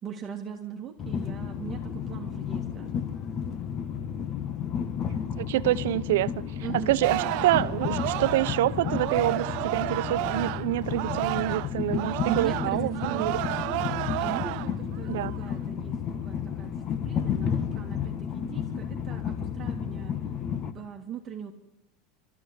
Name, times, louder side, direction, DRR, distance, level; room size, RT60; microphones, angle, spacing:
voice 1, 0.0-2.9 6.6-7.0 11.9-20.1 20.7-21.5, right 8 dB, 25° right, 2.2 m, -40 dB
Train, 1.0-20.7, left 8 dB, 35° left, 1.3 m, -32 dB
voice 2, 5.4-6.3 6.9-13.4 15.1-15.3, right 15 dB, 85° right, 0.8 m, -27 dB
Singing, 7.0-11.7 12.0-14.8 15.2-15.5, right 19 dB, 60° right, 0.8 m, -31 dB
25.5 x 13.5 x 9.8 m
supercardioid pair, 155°, 0 cm